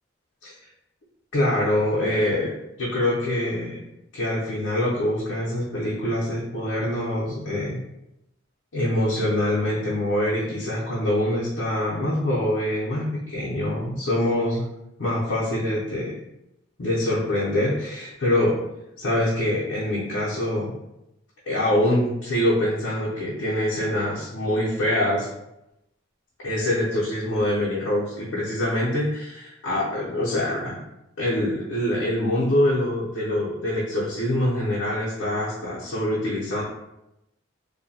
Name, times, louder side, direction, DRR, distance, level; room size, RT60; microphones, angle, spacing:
voice 1, 1.3-3.8 4.1-7.8 8.7-14.6 15.0-16.1 16.8-18.6 19.0-20.7 21.5-25.3 26.4-30.8 31.2-36.6, left 1 dB, 85° left, -8 dB, 0.7 m, -24 dB
2.6 x 2.2 x 2.7 m, 0.89 s
head